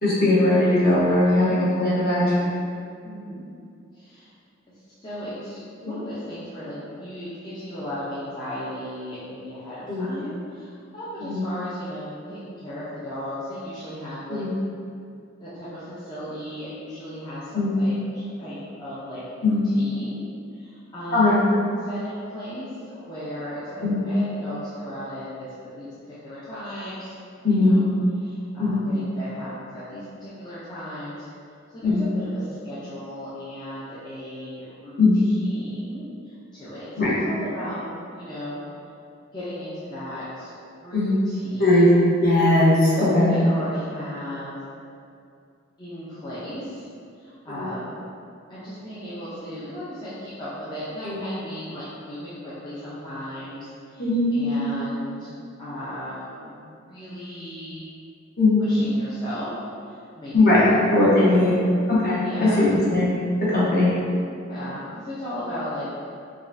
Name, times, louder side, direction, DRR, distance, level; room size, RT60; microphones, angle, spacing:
voice 1, 0.0-2.5 5.8-6.0 9.9-10.1 11.2-11.4 14.3-14.5 17.5-17.7 19.4-19.6 21.1-21.4 23.8-24.1 27.4-27.9 28.6-28.8 31.8-32.1 35.0-35.2 37.0-37.1 40.9-41.2 41.6-41.9 42.2-43.3 47.5-47.7 51.0-51.2 54.0-54.4 58.4-58.7 60.3-61.5 61.9-62.2 62.6-63.1 63.5-64.2, left 2 dB, 50° left, -9 dB, 1.1 m, -19 dB
voice 2, 3.0-3.4 3.9-4.3 5.0-14.4 15.4-20.2 20.5-21.4 21.8-22.7 22.9-27.1 27.5-27.9 28.2-31.3 31.7-35.0 35.2-37.8 38.1-38.6 39.3-40.5 40.8-42.0 43.3-44.6 45.8-46.9 47.2-47.9 48.5-55.3 55.6-57.9 58.6-59.5 59.8-60.7 61.2-61.6 62.2-62.7 64.5-65.9, equal, 20° left, -11 dB, 0.6 m, -36 dB
5.0 x 2.3 x 2.6 m, 2.4 s
head